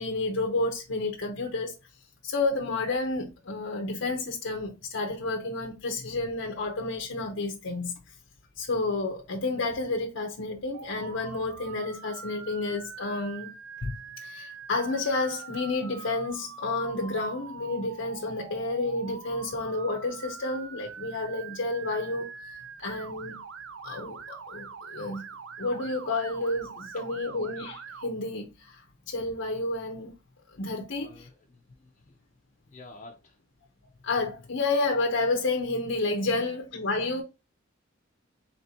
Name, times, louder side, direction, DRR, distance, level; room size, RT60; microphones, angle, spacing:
voice 1, 0.0-1.7 2.2-7.9 8.6-13.5 13.8-23.4 23.8-25.3 25.6-30.1 30.5-31.3 34.0-37.2, left 2 dB, 90° left, 0.8 m, -30 dB
Motor vehicle (road) / Siren, 10.7-28.1, right 6 dB, 90° right, 0.6 m, -44 dB
voice 2, 31.0-32.1 32.7-33.4 36.4-36.5, left 2 dB, 40° left, 0.6 m, -50 dB
4.3 x 3.9 x 2.8 m
head